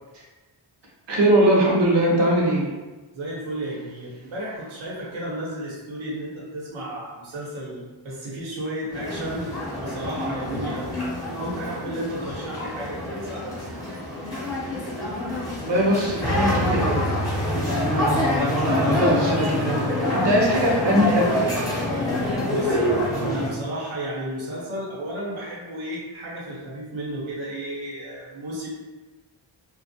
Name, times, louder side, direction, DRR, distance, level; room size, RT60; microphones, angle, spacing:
voice 1, 1.1-2.7 15.7-17.1 17.6-21.6, equal, 65° right, -3 dB, 0.8 m, -21 dB
voice 2, 3.1-13.9 22.4-28.7, right 1 dB, 85° right, -5 dB, 1.1 m, -33 dB
sound 1, 8.9-23.5, left 1 dB, 10° left, 0.7 m, -26 dB
2.6 x 2.4 x 2.7 m, 1.2 s
wide cardioid pair, 130°, 47 cm